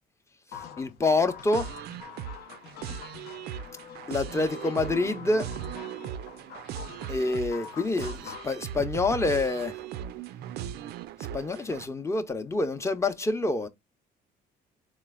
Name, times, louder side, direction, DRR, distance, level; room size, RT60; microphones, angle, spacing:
sound 1, 0.5-8.5, left 7 dB, 80° left, 0.6 m, -45 dB
voice 1, 0.5-1.7 4.1-5.5 7.1-9.8 11.2-13.7, left 2 dB, 15° left, 0.6 m, -27 dB
sound 2, 1.5-11.9, right 9 dB, 70° right, 0.4 m, -38 dB
4.1 x 3.0 x 2.2 m
cardioid pair, 110°, 17 cm